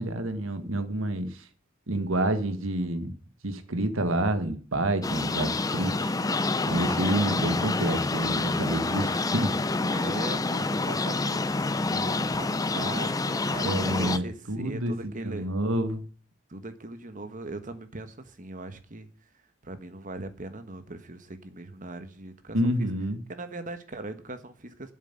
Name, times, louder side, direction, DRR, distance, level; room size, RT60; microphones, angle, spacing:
voice 1, 0.0-1.4 1.9-3.1 3.4-6.1 6.7-9.5 13.6-16.0 22.5-23.2, right 1 dB, 85° right, 1.6 m, -28 dB
sound 1, 5.0-14.2, left 3 dB, 20° left, 0.5 m, -28 dB
voice 2, 9.9-11.5 11.9-15.5 16.5-19.1 19.6-22.9 23.3-24.9, right 2 dB, 40° right, 1.4 m, -40 dB
8.2 x 7.5 x 8.8 m
head